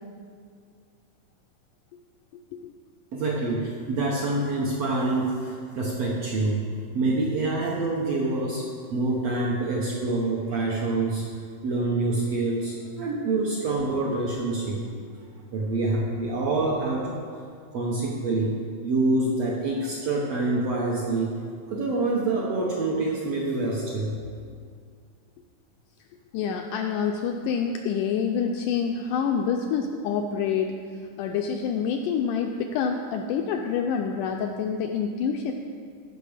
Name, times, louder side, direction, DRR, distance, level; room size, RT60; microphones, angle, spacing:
voice 1, 3.1-6.6 6.9-8.6 8.9-11.2 11.6-14.8 15.5-17.1 17.7-18.6 18.8-21.3 21.7-24.1, right 2 dB, 65° right, -3 dB, 1.6 m, -26 dB
voice 2, 26.3-30.7 31.2-35.5, left 6 dB, 85° left, 3 dB, 1.9 m, -27 dB
15.0 x 6.0 x 5.0 m, 2.2 s
omnidirectional pair, 4.2 m